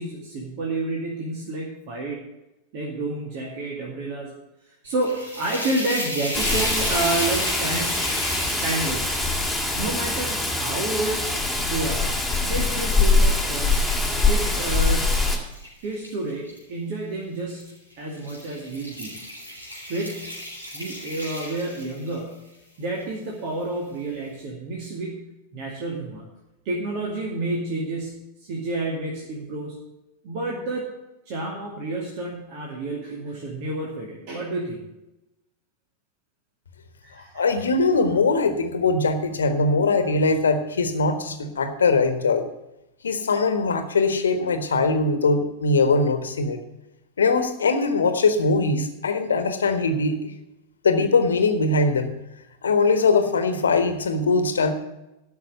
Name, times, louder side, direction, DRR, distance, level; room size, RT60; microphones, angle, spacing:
voice 1, 0.0-2.2 2.7-4.3 4.8-8.0 8.6-9.1 9.7-11.2 11.6-12.1 12.4-13.9 14.3-15.1 15.8-17.7 18.0-19.2 19.9-20.3 20.7-22.4 22.8-25.2 25.5-26.2 26.6-29.8 30.2-30.9 31.3-34.8 37.0-37.5, right 2 dB, 45° right, -2 dB, 2.3 m, -30 dB
sound 1, 4.8-12.1 12.6-16.6 17.5-17.8 18.1-22.3, left 1 dB, 85° right, 4.2 m, -35 dB
Rain, 6.3-15.4, left 3 dB, ahead, 2.3 m, -23 dB
voice 2, 37.3-42.4 43.0-46.6 47.2-50.3 50.8-52.1 52.6-54.7, left 3 dB, 70° left, 8 dB, 1.4 m, -21 dB
12.5 x 6.0 x 7.8 m, 0.94 s
figure-of-eight pair, 90°, 0 cm